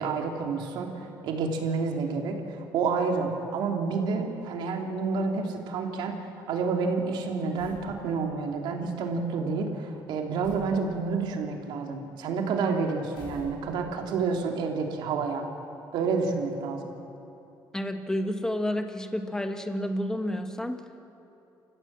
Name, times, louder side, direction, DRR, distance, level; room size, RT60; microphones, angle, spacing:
voice 1, 0.0-2.4 2.7-6.2 6.5-15.5 15.9-16.9, right 4 dB, 80° right, 2 dB, 2.9 m, -29 dB
sound 1, 7.6-7.9 10.4-10.8 13.1-13.9, left 3 dB, 85° left, 7.2 m, -46 dB
voice 2, 17.7-21.0, left 1 dB, 10° left, 7 dB, 1.5 m, -30 dB
29.5 x 15.5 x 7.4 m, 2.8 s
cardioid pair, 110°, 8 cm